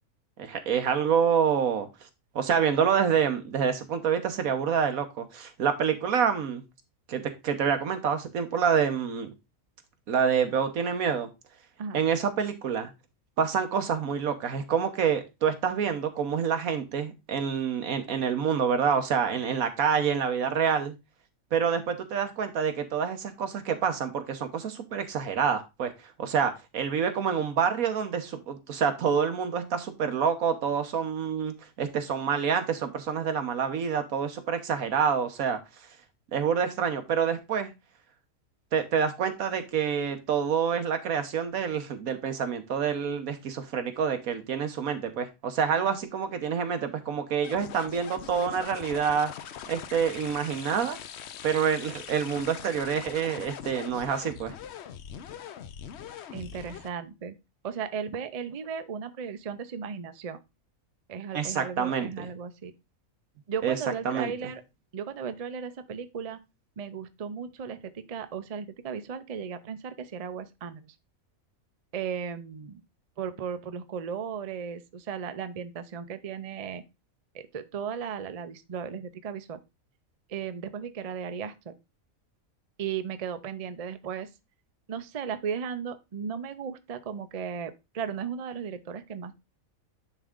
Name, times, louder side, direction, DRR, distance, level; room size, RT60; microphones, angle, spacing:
voice 1, 0.4-1.9 2.3-6.6 7.1-9.3 10.1-11.3 11.9-12.9 13.4-20.9 21.5-25.9 26.2-35.6 36.3-37.7 38.7-49.3 49.7-51.0 51.4-54.5 61.3-62.3 63.6-63.7 64.0-64.3, right 7 dB, 85° right, 8 dB, 1.5 m, -27 dB
sound 1, 47.4-56.9, left 8 dB, 60° left, 0.8 m, -42 dB
voice 2, 56.3-57.3 57.6-60.4 61.1-62.7 63.5-64.6 64.9-66.4 66.8-70.9 71.9-72.8 73.2-76.8 77.3-79.6 80.3-81.7 82.8-84.3 84.9-89.3, right 7 dB, 45° right, 11 dB, 0.5 m, -36 dB
9.8 x 3.7 x 3.6 m, 0.24 s
omnidirectional pair, 1.4 m